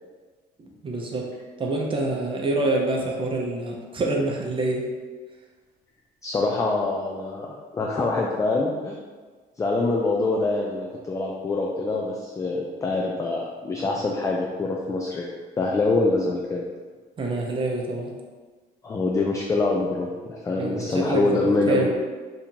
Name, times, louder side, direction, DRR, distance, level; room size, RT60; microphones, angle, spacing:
voice 1, 0.6-1.3 1.6-4.9 17.2-18.1 20.6-21.9, right 2 dB, 30° right, 0 dB, 0.6 m, -26 dB
voice 2, 6.2-9.0 9.6-15.3 15.6-16.6 18.8-21.9, left 3 dB, 20° left, -1 dB, 0.3 m, -25 dB
2.8 x 2.5 x 4.3 m, 1.4 s
cardioid pair, 110°, 17 cm